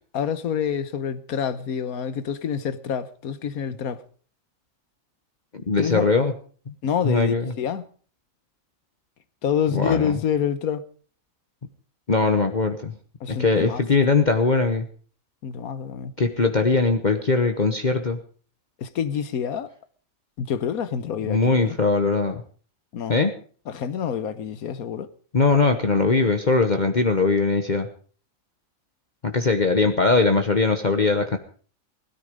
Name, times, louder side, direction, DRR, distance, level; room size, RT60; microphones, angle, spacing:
voice 1, 0.1-4.0 5.8-6.1 6.8-7.8 9.4-10.8 13.2-13.8 15.4-16.1 18.8-19.7 20.4-21.8 22.9-23.1 23.7-25.1, left 8 dB, 85° left, 1.5 m, -27 dB
voice 2, 5.7-6.3 7.0-7.5 9.7-10.2 12.1-12.9 13.3-14.9 16.2-18.2 21.2-22.4 23.1-23.3 25.3-27.9 29.2-31.4, left 3 dB, 35° left, 1.1 m, -21 dB
16.5 x 13.0 x 5.2 m
omnidirectional pair, 1.5 m